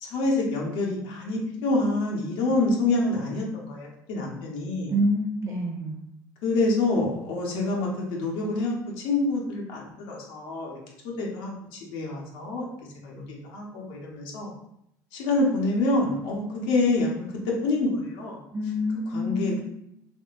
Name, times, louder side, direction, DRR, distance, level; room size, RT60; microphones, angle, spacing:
voice 1, 0.0-4.9 6.4-10.8 11.0-12.6 13.0-14.5 15.1-18.4 19.1-19.6, left 2 dB, 70° left, -2 dB, 0.9 m, -27 dB
voice 2, 4.9-6.0 18.5-19.6, equal, 30° right, -1 dB, 1.4 m, -27 dB
3.7 x 3.1 x 2.4 m, 0.77 s
hypercardioid pair, 65°, 10 cm